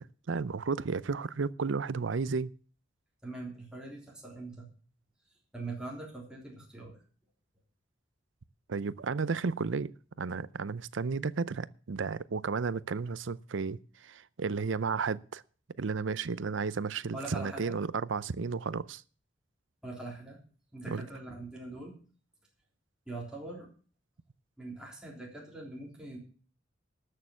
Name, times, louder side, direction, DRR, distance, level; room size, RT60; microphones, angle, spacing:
voice 1, 0.0-2.5 8.7-9.9 10.2-15.4 15.8-19.0 20.9-21.1, right 4 dB, 85° right, 0.6 m, -33 dB
voice 2, 3.2-4.7 5.5-7.0 17.1-17.8 19.8-20.4 20.7-21.9 23.1-23.7 24.6-26.2, right 2 dB, 5° right, 3.6 m, -42 dB
13.0 x 6.6 x 7.2 m
head